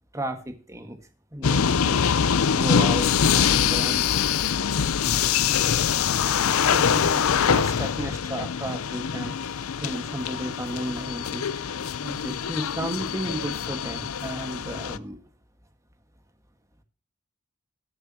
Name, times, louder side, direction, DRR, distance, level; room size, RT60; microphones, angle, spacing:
voice 1, 0.1-1.0 1.3-2.0 2.5-4.1 6.6-15.2, right 1 dB, 15° right, 7 dB, 1.4 m, -34 dB
sound 1, 1.4-15.0, left 7 dB, 80° left, 0.6 m, -24 dB
20.5 x 8.0 x 2.8 m, 0.37 s
head